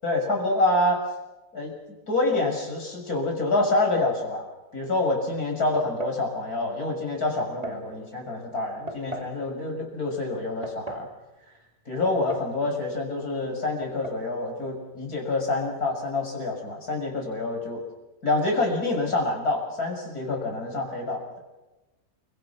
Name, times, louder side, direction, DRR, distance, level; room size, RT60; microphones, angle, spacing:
voice 1, 0.0-1.0 1.5-1.7 2.1-4.4 4.7-11.1 11.9-17.8 18.2-21.2, left 2 dB, 65° left, 1 dB, 7.1 m, -27 dB
sound 1, 5.8-6.2 7.4-7.9 8.9-9.4 10.4-11.1 12.1-12.6 12.8-12.9 13.8-14.2, right 2 dB, 20° right, 2.9 m, -36 dB
29.5 x 25.5 x 6.0 m, 1.1 s
omnidirectional pair, 1.7 m